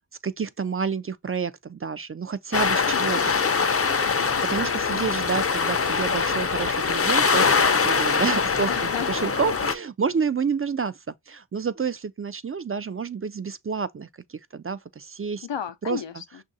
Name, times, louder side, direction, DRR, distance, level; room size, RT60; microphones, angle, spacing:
voice 1, 0.2-3.3 4.5-15.5 15.8-16.0, right 6 dB, 35° right, 0.4 m, -29 dB
sound 1, 2.5-9.7, left 5 dB, 35° left, 0.5 m, -23 dB
voice 2, 2.9-3.4 4.0-4.4 8.7-9.3 15.4-16.4, left 8 dB, 85° left, 0.6 m, -34 dB
6.1 x 2.5 x 2.7 m
wide cardioid pair, 45°, 42 cm